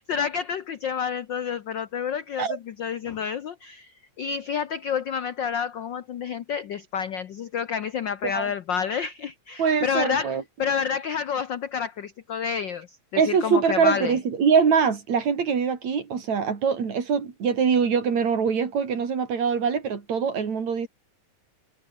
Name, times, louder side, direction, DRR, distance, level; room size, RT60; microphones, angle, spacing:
voice 1, 0.0-3.9 4.2-14.2, left 7 dB, 80° left, 1.0 m, -29 dB
voice 2, 9.6-10.4 13.2-20.9, right 6 dB, 70° right, 4.6 m, -23 dB
omnidirectional pair, 3.3 m